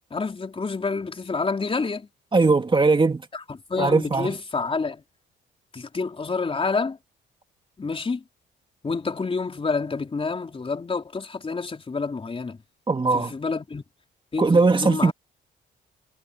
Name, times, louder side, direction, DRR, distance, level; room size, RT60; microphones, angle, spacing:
voice 1, 0.1-2.1 3.3-5.0 5.7-7.0 7.8-8.2 8.8-12.6 13.1-13.8 14.3-15.1, left 4 dB, 30° left, 4.0 m, -28 dB
voice 2, 2.3-3.2 3.8-4.3 12.9-13.3 14.4-15.1, right 3 dB, 25° right, 2.3 m, -19 dB
cardioid pair, 90°, 20 cm